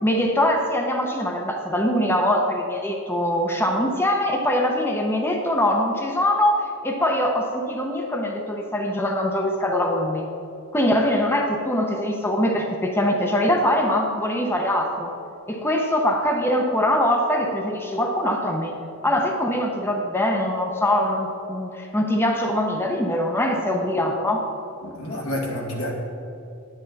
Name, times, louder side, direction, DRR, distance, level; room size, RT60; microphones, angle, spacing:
voice 1, 0.0-10.3 10.7-15.1 15.5-18.8 19.0-24.4, left 1 dB, 10° left, 2 dB, 0.7 m, -23 dB
voice 2, 24.8-25.9, left 1 dB, 80° left, -2 dB, 2.2 m, -29 dB
10.5 x 8.9 x 4.1 m, 2.7 s
head